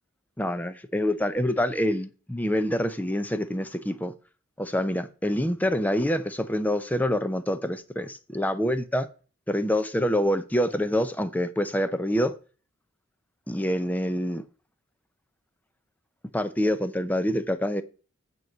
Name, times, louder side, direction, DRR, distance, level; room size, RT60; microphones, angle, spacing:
voice 1, 0.4-4.1 4.6-9.1 9.5-12.4 13.5-14.4 16.3-17.8, equal, 10° left, 0.6 m, -26 dB
9.0 x 4.6 x 6.6 m
head